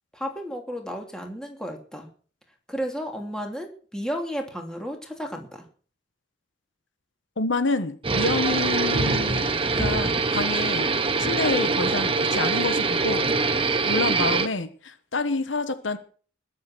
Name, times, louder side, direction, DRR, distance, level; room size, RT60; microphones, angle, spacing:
voice 1, 0.1-2.1 2.7-5.6, equal, 5° left, 2 dB, 3.0 m, -33 dB
voice 2, 7.4-9.5 9.8-10.9 11.2-13.3 13.9-14.7 15.1-16.0, left 3 dB, 75° left, 11 dB, 1.3 m, -27 dB
sound 1, 8.0-14.5, right 4 dB, 30° right, 1.1 m, -23 dB
20.5 x 7.7 x 6.2 m, 0.42 s
head